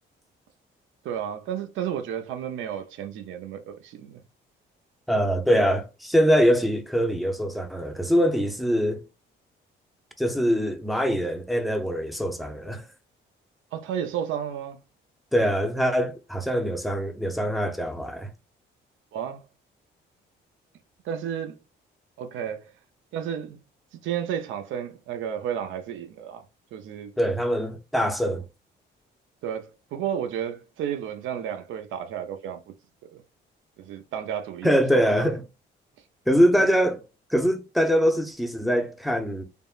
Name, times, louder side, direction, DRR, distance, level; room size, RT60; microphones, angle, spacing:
voice 1, 1.0-4.2 13.7-14.8 19.1-19.4 21.0-21.6 22.2-22.7 23.1-23.6 24.0-26.4 26.7-27.1 29.4-32.6 33.1-33.2 33.8-35.2 36.6-36.7, right 9 dB, 80° right, 0.5 m, -32 dB
voice 2, 5.1-9.0 10.2-12.9 15.3-18.3 27.2-28.5 34.6-35.4 36.3-37.0 37.3-39.4, equal, ahead, 0.5 m, -23 dB
3.5 x 2.1 x 2.3 m
cardioid pair, 90°, 20 cm